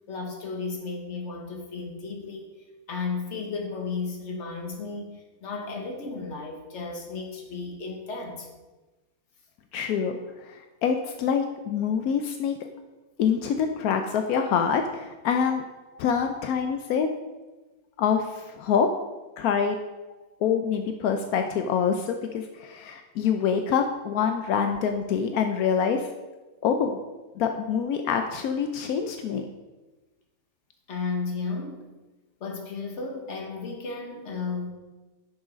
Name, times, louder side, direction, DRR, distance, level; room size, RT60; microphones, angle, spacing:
voice 1, 0.1-2.5 2.9-8.5 20.2-20.3 30.9-31.8 32.4-34.7, left 4 dB, 50° left, 2 dB, 1.5 m, -34 dB
voice 2, 9.7-12.5 13.2-15.6 16.0-17.1 18.0-18.9 19.4-19.8 20.4-26.1 26.6-27.0 27.4-29.5, left 7 dB, 85° left, 5 dB, 1.1 m, -26 dB
7.1 x 6.3 x 5.1 m, 1.2 s
omnidirectional pair, 1.5 m